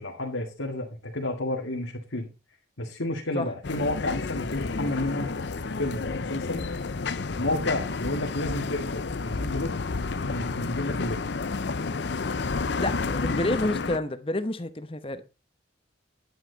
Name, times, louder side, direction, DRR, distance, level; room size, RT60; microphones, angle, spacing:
voice 1, 0.0-2.3 2.8-5.3 5.8-6.6 7.3-9.7 10.1-11.2, left 1 dB, 90° left, 2.2 m, -31 dB
sound 1, 3.6-14.0, left 4 dB, 60° left, 0.6 m, -30 dB
voice 2, 12.8-15.2, left 1 dB, 30° left, 1.0 m, -29 dB
10.5 x 9.4 x 4.0 m
head